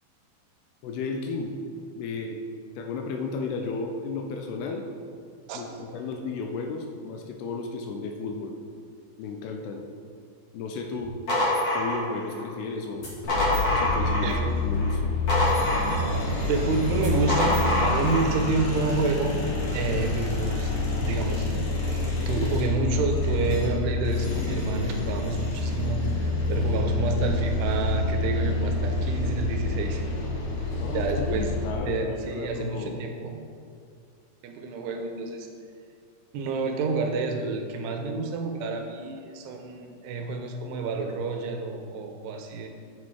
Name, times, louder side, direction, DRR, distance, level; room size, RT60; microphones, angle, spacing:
voice 1, 0.8-1.6 1.9-2.4 2.8-4.8 5.5-8.5 9.2-9.8 10.5-11.1 11.7-13.1 13.7-15.1 30.8-32.9, left 4 dB, 80° left, 3 dB, 2.3 m, -33 dB
voice 2, 5.5-5.9 14.2-14.4 15.7-16.1 16.5-19.4 19.6-30.0 30.9-31.5 31.9-33.3 34.4-35.5 36.3-42.7, right 3 dB, 80° right, 3 dB, 2.6 m, -29 dB
sound 1, 11.3-12.4 13.0-14.4 14.8-16.3 17.0-18.3, left 1 dB, 45° left, 2.4 m, -26 dB
sound 2, 13.2-31.7, left 3 dB, 60° left, 2.1 m, -27 dB
9.5 x 6.3 x 4.8 m, 2.3 s
omnidirectional pair, 5.2 m